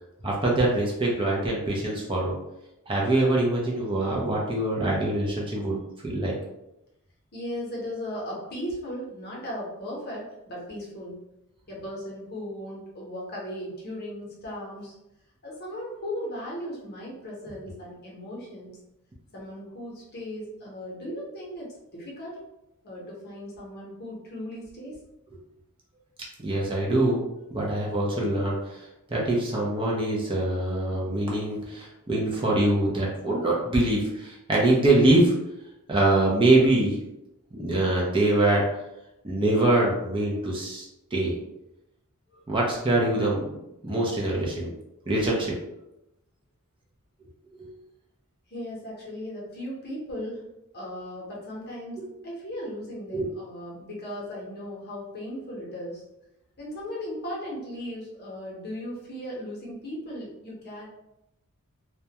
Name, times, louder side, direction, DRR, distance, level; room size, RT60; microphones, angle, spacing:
voice 1, 0.2-2.4 2.9-6.3 26.4-27.2 27.5-28.6 29.1-35.3 35.9-37.0 37.5-38.6 39.2-40.8 41.1-41.3 42.5-43.4 43.8-44.7 45.1-45.5 47.5-47.7 53.1-53.3, right 2 dB, 25° right, -4 dB, 0.5 m, -24 dB
voice 2, 7.3-11.2 11.7-14.9 15.4-18.8 19.3-22.4 22.8-25.0 48.5-50.5 50.7-56.0 56.6-60.9, equal, 45° left, -4 dB, 0.8 m, -37 dB
2.3 x 2.1 x 2.8 m, 0.88 s
head